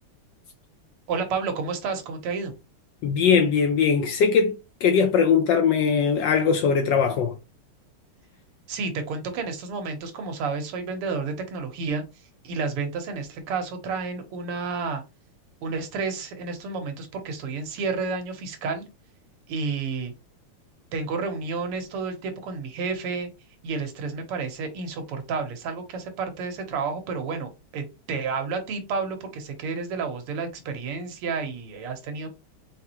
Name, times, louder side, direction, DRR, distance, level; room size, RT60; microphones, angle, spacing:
voice 1, 1.1-2.5 8.7-15.0 15.6-18.9 19.5-20.1 20.9-23.3 23.6-32.3, right 4 dB, 85° right, 1.9 m, -31 dB
voice 2, 3.0-7.3, left 6 dB, 75° left, 1.1 m, -21 dB
4.6 x 3.5 x 2.8 m
omnidirectional pair, 2.4 m